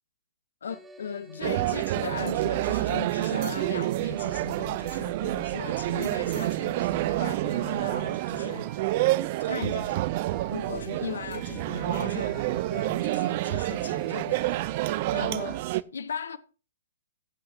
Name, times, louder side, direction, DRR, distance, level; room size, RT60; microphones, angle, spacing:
voice 1, 0.6-9.0 9.4-10.1 10.5-14.6 15.1-16.4, left 6 dB, 70° left, 0.8 m, -38 dB
sound 1, 0.7-15.7, right 3 dB, 10° right, 1.1 m, -48 dB
sound 2, 1.4-15.8, right 17 dB, 45° right, 0.5 m, -28 dB
16.5 x 7.5 x 2.8 m
figure-of-eight pair, 125°, 0 cm